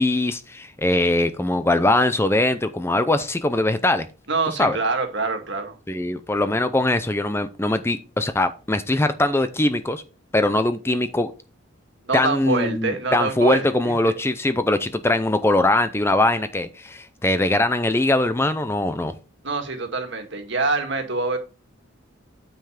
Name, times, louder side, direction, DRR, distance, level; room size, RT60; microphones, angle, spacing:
voice 1, 0.0-4.1 4.5-4.8 5.9-10.0 10.3-11.3 12.1-19.1, left 2 dB, 10° left, 0.5 m, -21 dB
voice 2, 4.3-5.7 12.1-14.1 19.4-21.4, right 3 dB, 60° right, 1.9 m, -25 dB
9.0 x 5.6 x 5.0 m
head